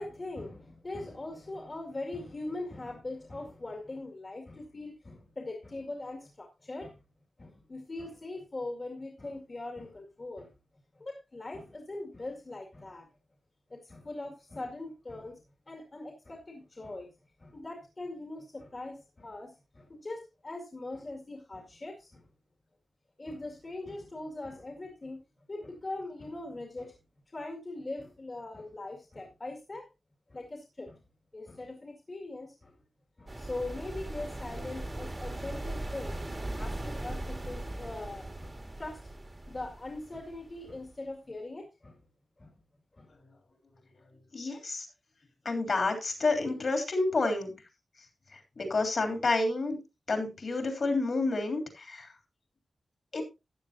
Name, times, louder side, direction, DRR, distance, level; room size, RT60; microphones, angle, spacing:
voice 1, 0.0-7.0 7.4-10.5 10.9-13.1 13.7-15.4 15.7-17.1 17.4-22.3 23.2-27.0 27.3-29.9 30.3-31.0 31.3-32.7 33.2-36.3 36.6-39.1 39.5-42.0 42.4-42.5 42.9-43.1, left 2 dB, 30° left, 2.1 m, -41 dB
sound 1, 33.3-40.9, right 1 dB, 25° right, 1.8 m, -39 dB
voice 2, 44.3-44.9 45.4-47.5 48.3-49.8 50.1-52.1 53.1-53.2, left 3 dB, 55° left, 3.4 m, -29 dB
14.0 x 9.5 x 2.7 m
wide cardioid pair, 155°, 0 cm